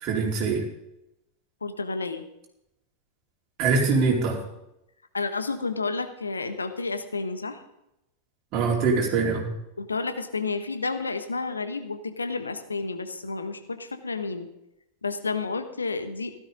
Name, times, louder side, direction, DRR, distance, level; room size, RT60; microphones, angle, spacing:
voice 1, 0.0-0.6 3.6-4.4 8.5-9.4, right 4 dB, 40° right, -1 dB, 4.3 m, -23 dB
voice 2, 1.6-2.2 5.1-7.6 9.8-14.5 15.0-16.3, left 4 dB, 75° left, 9 dB, 1.3 m, -31 dB
16.0 x 13.0 x 3.9 m, 0.86 s
figure-of-eight pair, 90°, 0 cm